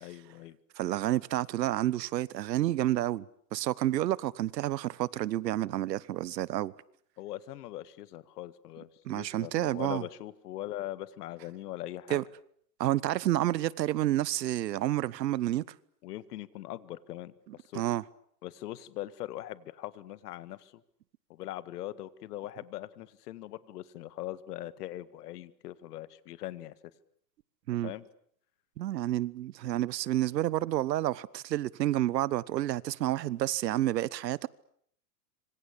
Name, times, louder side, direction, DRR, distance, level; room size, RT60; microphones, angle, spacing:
voice 1, 0.0-0.6 7.2-12.2 16.0-17.8 18.4-20.7 21.3-26.8 27.8-28.1, left 14 dB, 65° left, 1.9 m, -41 dB
voice 2, 0.8-3.2 3.5-6.7 9.0-10.0 12.1-12.2 12.8-15.6 17.7-18.0 27.7-27.9 28.8-34.5, right 14 dB, 80° right, 1.2 m, -29 dB
26.0 x 25.0 x 8.5 m
supercardioid pair, 140°, 50 cm